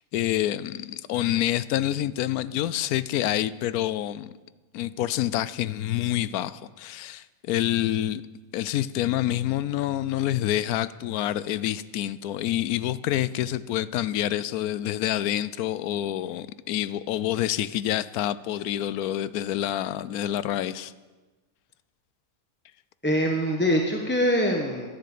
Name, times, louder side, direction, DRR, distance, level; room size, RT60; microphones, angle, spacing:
voice 1, 0.0-4.3 4.7-8.2 8.5-20.9, left 13 dB, 85° left, 16 dB, 1.1 m, -27 dB
voice 2, 23.0-24.9, equal, 10° left, 0 dB, 1.0 m, -23 dB
12.0 x 10.0 x 8.3 m, 1.3 s
omnidirectional pair, 1.5 m